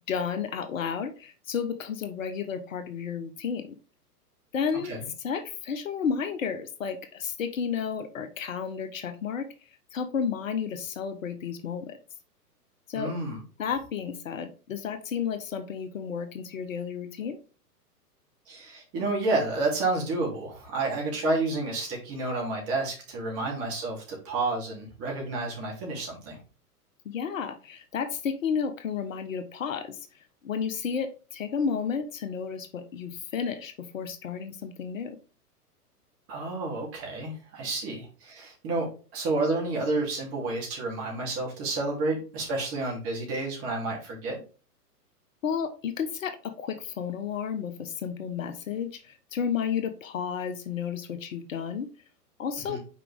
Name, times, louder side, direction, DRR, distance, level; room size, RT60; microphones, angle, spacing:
voice 1, 0.1-3.8 4.5-4.9 5.2-9.5 9.9-12.0 12.9-13.1 13.6-17.4 27.0-30.0 30.4-35.2 45.4-51.9 52.4-52.8, left 7 dB, 55° left, 9 dB, 0.9 m, -32 dB
voice 2, 12.9-13.4 18.5-26.4 36.3-38.9 39.1-44.4 52.7-52.8, right 2 dB, 30° right, -1 dB, 2.9 m, -30 dB
5.9 x 4.7 x 3.5 m, 0.36 s
figure-of-eight pair, 110°, 47 cm